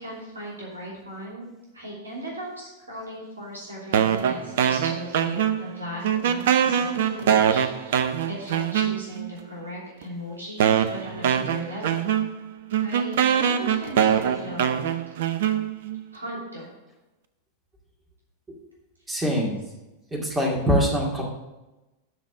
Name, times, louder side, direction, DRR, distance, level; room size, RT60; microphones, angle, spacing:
voice 1, 0.0-1.5 1.7-12.1 12.8-14.9 16.1-16.7, equal, 75° right, -5 dB, 3.0 m, -37 dB
sound 1, 3.9-5.8 6.0-9.3 10.0-10.1 10.6-16.0, right 9 dB, 55° right, 0.6 m, -23 dB
voice 2, 19.1-19.6 20.1-21.2, equal, 15° right, -2 dB, 2.3 m, -23 dB
12.5 x 4.2 x 6.1 m, 1.0 s
figure-of-eight pair, 90°, 0 cm